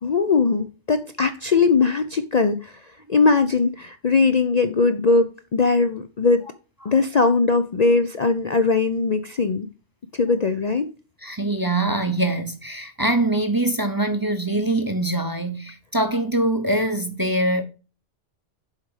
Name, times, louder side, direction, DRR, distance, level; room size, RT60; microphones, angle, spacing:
voice 1, 0.0-6.5 6.8-9.7 10.1-10.9, left 4 dB, 45° left, 0.6 m, -20 dB
voice 2, 11.2-17.6, right 1 dB, 20° right, 0.7 m, -23 dB
7.4 x 5.0 x 4.8 m
omnidirectional pair, 1.2 m